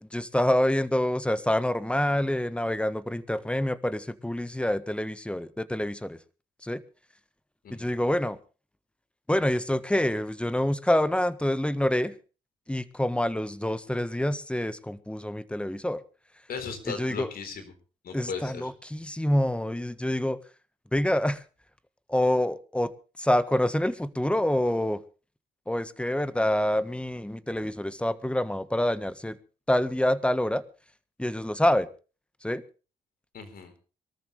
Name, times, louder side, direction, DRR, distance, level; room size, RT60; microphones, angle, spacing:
voice 1, 0.0-6.2 6.6-6.8 7.7-8.4 9.3-12.1 12.7-16.0 16.9-17.3 18.1-20.4 20.9-21.4 22.1-22.9 23.2-25.0 25.7-29.4 29.7-30.6 31.2-31.9 32.4-32.6, left 1 dB, 5° left, 15 dB, 1.5 m, -26 dB
voice 2, 16.5-17.7 18.0-18.7 33.3-33.7, left 5 dB, 70° left, 9 dB, 4.1 m, -37 dB
23.0 x 13.5 x 3.4 m, 0.35 s
supercardioid pair, 55°, 16 cm